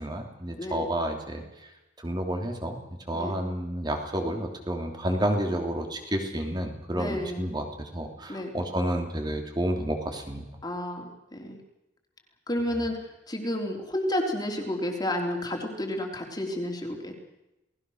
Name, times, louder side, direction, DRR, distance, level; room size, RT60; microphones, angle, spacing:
voice 1, 0.0-1.4 2.0-2.8 3.1-10.4, equal, 25° right, 4 dB, 3.2 m, -30 dB
voice 2, 6.9-7.5 8.3-8.5 10.6-11.6 12.5-17.1, left 1 dB, 20° left, 2 dB, 3.4 m, -31 dB
29.5 x 19.5 x 6.5 m, 0.96 s
head